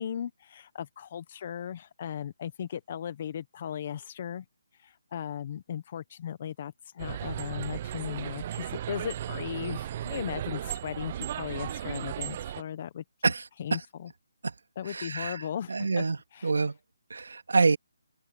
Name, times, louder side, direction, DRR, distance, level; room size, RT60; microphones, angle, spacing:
voice 1, 0.0-4.4 4.7-13.3 13.6-14.1 14.8-16.0 16.3-16.6, left 9 dB, 40° left, 1.2 m, -37 dB
sound 1, 7.0-12.6, right 11 dB, 35° right, 0.6 m, -36 dB
voice 2, 14.9-15.4 15.7-16.2 16.4-16.8 17.1-17.8, right 4 dB, 80° right, 2.4 m, -26 dB
open air
hypercardioid pair, 160°, 0 cm